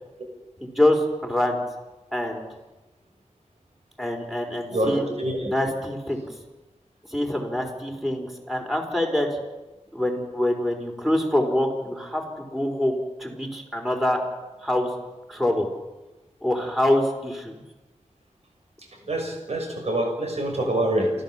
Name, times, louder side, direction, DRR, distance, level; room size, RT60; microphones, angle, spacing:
voice 1, 0.6-1.6 2.1-2.5 4.0-5.0 5.4-6.3 7.1-9.4 9.9-14.2 14.6-14.9 15.3-15.7 16.4-17.6, left 1 dB, ahead, 2 dB, 4.5 m, -25 dB
voice 2, 4.7-5.5 19.0-21.1, right 1 dB, 65° right, 2 dB, 6.4 m, -25 dB
29.5 x 12.5 x 7.3 m, 1.1 s
wide cardioid pair, 95°, 12 cm